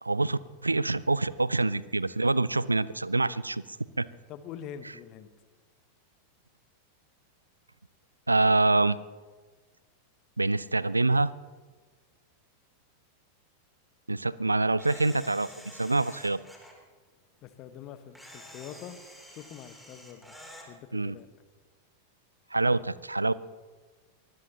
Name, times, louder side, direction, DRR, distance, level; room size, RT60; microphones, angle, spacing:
voice 1, 0.0-3.6 4.0-4.1 8.3-9.0 10.4-11.3 14.1-16.4 20.9-21.1 22.5-23.3, right 2 dB, 80° right, 20 dB, 0.4 m, -26 dB
voice 2, 4.3-5.3 17.4-19.0 19.3-20.2 20.7-21.3, left 9 dB, 40° left, 11 dB, 1.2 m, -44 dB
Camera, 14.8-16.7 18.1-20.7, equal, ahead, 3.2 m, -48 dB
24.0 x 19.0 x 2.9 m, 1.4 s
figure-of-eight pair, 90°, 0 cm